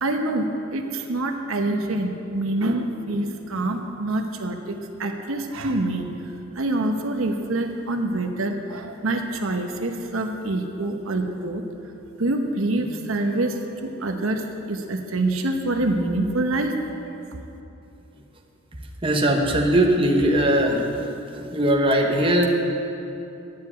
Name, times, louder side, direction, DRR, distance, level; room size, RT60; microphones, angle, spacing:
voice 1, 0.0-4.7 5.0-6.1 6.6-11.6 12.2-16.8 17.0-17.2, right 2 dB, 80° right, 4 dB, 0.9 m, -26 dB
voice 2, 19.0-20.9 21.3-22.5, right 1 dB, 25° right, 1 dB, 1.1 m, -20 dB
10.5 x 7.7 x 8.7 m, 2.9 s
head